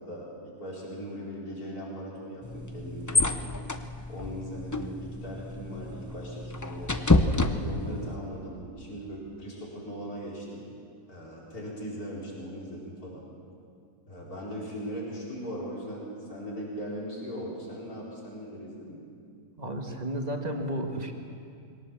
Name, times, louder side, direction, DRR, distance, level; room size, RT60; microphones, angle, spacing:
voice 1, 0.0-3.3 4.1-7.0 7.3-10.7 11.1-13.2 14.1-19.0, equal, 75° left, -5 dB, 5.1 m, -39 dB
sound 1, 2.4-8.2, left 2 dB, 25° left, 0.3 m, -29 dB
voice 2, 19.6-21.1, right 1 dB, 25° right, 3 dB, 1.7 m, -32 dB
22.0 x 18.0 x 7.3 m, 2.4 s
omnidirectional pair, 1.6 m